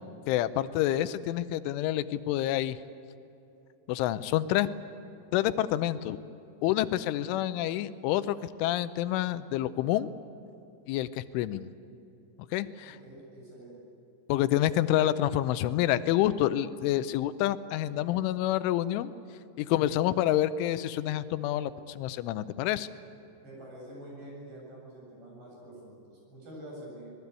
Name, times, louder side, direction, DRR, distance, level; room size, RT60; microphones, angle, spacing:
voice 1, 0.3-2.8 3.9-4.7 5.3-6.2 6.6-10.1 10.9-11.7 12.5-13.0 14.3-19.1 19.6-22.9, left 13 dB, 90° left, 13 dB, 3.2 m, -28 dB
voice 2, 7.0-7.4 12.8-13.9 23.4-27.1, right 1 dB, 55° right, -2 dB, 9.7 m, -47 dB
25.5 x 20.0 x 8.3 m, 2.8 s
omnidirectional pair, 5.4 m